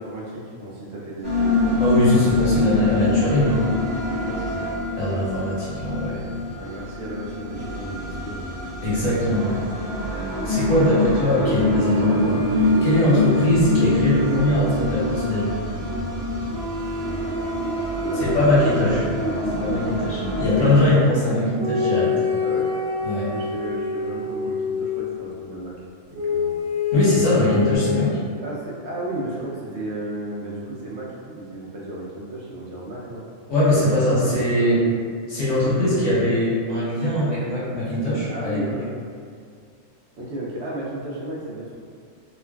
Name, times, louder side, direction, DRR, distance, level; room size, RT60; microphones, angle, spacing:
voice 1, 0.0-2.0 2.3-2.9 4.2-4.7 6.5-8.5 17.7-18.5 18.8-19.1 22.4-22.7 23.3-25.8 26.1-26.6 28.4-33.3 34.1-34.9 35.6-36.1 38.3-38.9 40.2-41.8, right 1 dB, 65° right, -6 dB, 0.8 m, -34 dB
sound 1, 1.2-20.9, left 2 dB, 55° left, 1.1 m, -25 dB
voice 2, 1.8-3.7 5.0-6.3 8.8-9.6 10.4-15.5 18.2-19.0 19.5-22.1 23.0-23.3 26.9-28.1 33.5-34.8 35.3-38.6, left 1 dB, 70° left, -9 dB, 1.4 m, -21 dB
sound 2, 11.6-15.3 16.5-19.6 21.6-25.1 26.1-27.8, left 2 dB, 40° right, 1.1 m, -27 dB
3.0 x 2.4 x 2.2 m, 2.2 s
omnidirectional pair, 1.3 m